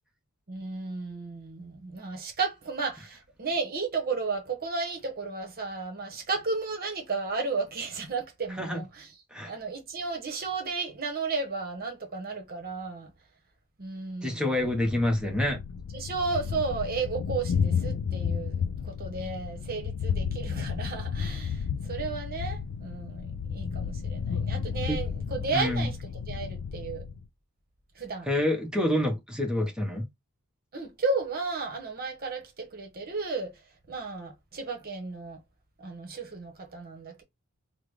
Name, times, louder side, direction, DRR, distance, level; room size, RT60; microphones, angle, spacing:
voice 1, 0.5-9.1 9.4-13.1 13.8-14.7 15.9-27.0 28.0-28.3 30.7-33.5 33.9-35.4 35.8-37.2, right 4 dB, 45° right, 1.0 m, -33 dB
voice 2, 14.2-15.6 24.9-25.0 25.5-25.9 28.3-30.1, left 1 dB, 5° right, 1.0 m, -27 dB
Thunder, 14.6-27.2, left 6 dB, 75° left, 0.4 m, -32 dB
3.5 x 2.1 x 3.2 m
head